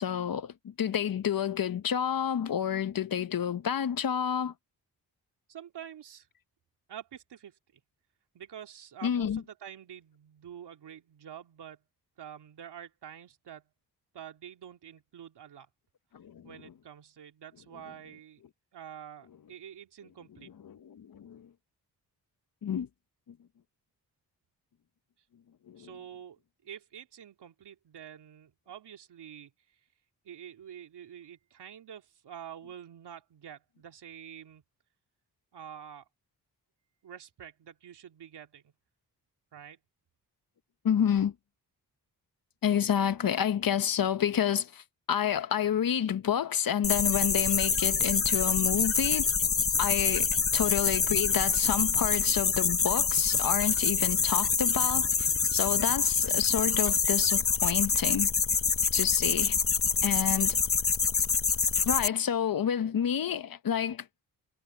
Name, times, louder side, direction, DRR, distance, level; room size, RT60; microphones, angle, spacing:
voice 1, 0.0-4.5 9.0-9.4 16.1-16.5 20.6-21.5 22.6-22.9 25.7-25.9 40.8-41.3 42.6-49.3 49.8-58.3 58.9-59.6 60.0-60.6 61.8-64.1, left 9 dB, 55° left, 1.1 m, -29 dB
voice 2, 5.5-6.3 6.9-7.8 8.3-11.8 12.2-13.7 14.1-15.7 16.4-18.4 18.7-20.5 25.8-29.5 30.2-34.6 35.5-36.0 37.0-38.7 39.5-39.8 50.2-50.5, right 9 dB, 80° right, 2.9 m, -47 dB
sound 1, 46.8-62.1, left 5 dB, 35° left, 0.9 m, -26 dB
cardioid pair, 60°, 40 cm